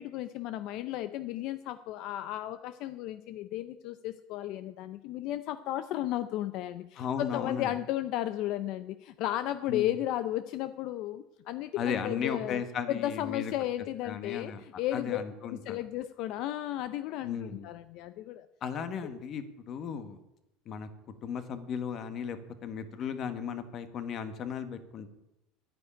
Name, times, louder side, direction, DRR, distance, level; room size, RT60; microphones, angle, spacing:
voice 1, 0.0-12.6 12.9-15.2 15.5-18.5, left 13 dB, 50° left, 12 dB, 0.5 m, -34 dB
voice 2, 7.0-7.7 9.7-9.9 11.8-13.5 14.0-14.6 14.9-15.8 17.2-17.7 18.6-20.2 20.7-20.9 21.2-25.1, left 7 dB, 35° left, 10 dB, 1.3 m, -35 dB
10.0 x 9.7 x 10.0 m, 0.90 s
cardioid pair, 165°, 0 cm